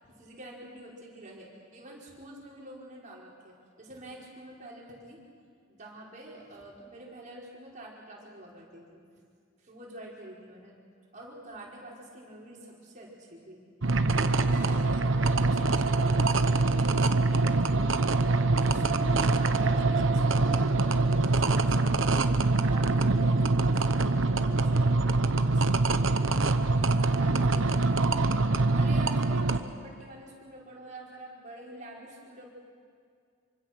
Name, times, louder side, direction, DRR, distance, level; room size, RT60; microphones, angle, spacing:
voice 1, 0.1-5.2 5.7-9.0 9.6-10.8 11.1-13.6 14.1-16.4 16.8-17.7 18.5-22.0 22.6-26.2 27.0-28.0 28.7-32.5, right 1 dB, 40° right, -4 dB, 5.7 m, -46 dB
sound 1, 13.8-29.6, right 3 dB, 75° right, 1.0 m, -24 dB
26.5 x 24.5 x 6.4 m, 2.2 s
head